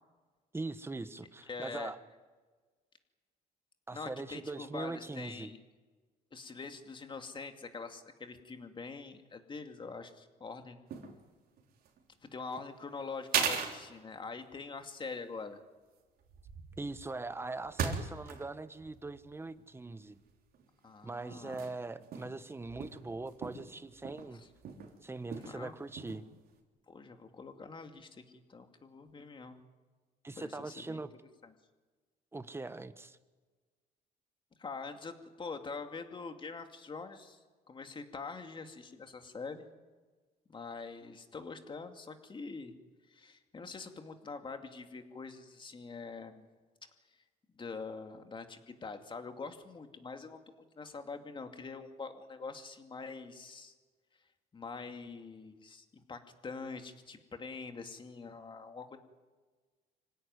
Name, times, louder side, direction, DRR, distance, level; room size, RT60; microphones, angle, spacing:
voice 1, 0.5-2.0 3.9-5.5 16.8-20.2 21.0-24.4 25.0-26.3 30.2-31.1 32.3-33.2, right 3 dB, 15° right, 13 dB, 1.2 m, -41 dB
voice 2, 1.5-1.9 3.9-5.6 6.3-10.8 12.3-15.6 20.8-21.6 24.3-24.5 25.3-25.8 26.9-29.6 30.4-31.0 31.4-31.5 34.6-39.7 40.5-42.7 43.1-46.5 47.1-47.2 47.5-53.7 54.5-59.0, left 4 dB, 30° left, 6 dB, 2.5 m, -44 dB
sound 1, 10.9-11.2 11.5-12.0 12.5-12.6 13.3-13.8 14.4-14.6 15.0-15.1 16.2-18.5 18.8-20.1 20.5-20.7 21.3-21.7 22.0-22.4 22.6-24.9 25.3-25.6 25.8-26.2, right 7 dB, 65° right, 3.6 m, -38 dB
26.0 x 16.5 x 9.7 m, 1.4 s
cardioid pair, 110°, 17 cm